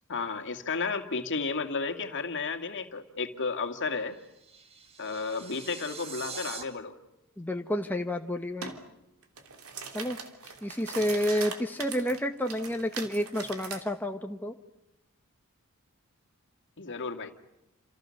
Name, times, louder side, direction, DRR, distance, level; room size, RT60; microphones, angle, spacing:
voice 1, 0.1-4.2 5.0-7.0 16.8-17.3, left 4 dB, 60° left, 6 dB, 2.4 m, -33 dB
sound 1, 4.0-6.6, right 5 dB, 30° right, 2.4 m, -43 dB
voice 2, 7.4-8.7 9.9-10.2 10.6-14.5, equal, 10° left, 4 dB, 1.2 m, -30 dB
sound 2, 8.6-8.8 9.2-13.8, right 5 dB, 80° right, 3.2 m, -40 dB
29.0 x 27.5 x 6.6 m, 0.91 s
head